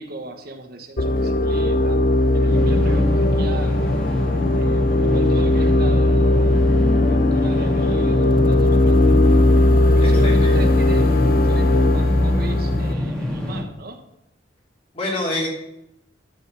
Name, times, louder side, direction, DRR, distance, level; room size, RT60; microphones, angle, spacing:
voice 1, 0.0-2.0 2.3-3.8 4.5-9.2 9.9-14.0, right 2 dB, 50° right, 5 dB, 1.3 m, -37 dB
sound 1, 1.0-12.9, left 2 dB, 50° left, 0.7 m, -17 dB
sound 2, 2.5-13.6, left 1 dB, 5° left, 1.8 m, -27 dB
voice 2, 10.0-10.6 14.9-15.5, left 1 dB, 30° left, -3 dB, 3.2 m, -27 dB
13.0 x 5.4 x 7.5 m, 0.85 s
head